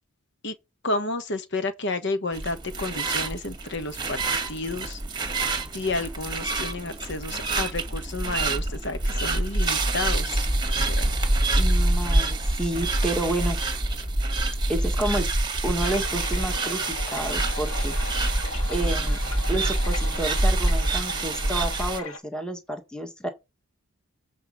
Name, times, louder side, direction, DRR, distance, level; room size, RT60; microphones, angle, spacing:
voice 1, 0.8-4.2 4.5-5.0 5.7-10.5 10.9-11.1, left 2 dB, 55° left, 1.3 m, -31 dB
sound 1, 2.3-22.0, right 2 dB, 20° right, 1.5 m, -26 dB
voice 2, 11.5-13.6 14.7-15.3 15.6-17.9 18.7-19.2 19.5-23.3, right 1 dB, 5° left, 1.4 m, -30 dB
sound 2, 15.8-22.2, left 2 dB, 70° left, 1.9 m, -38 dB
8.0 x 4.9 x 5.1 m
head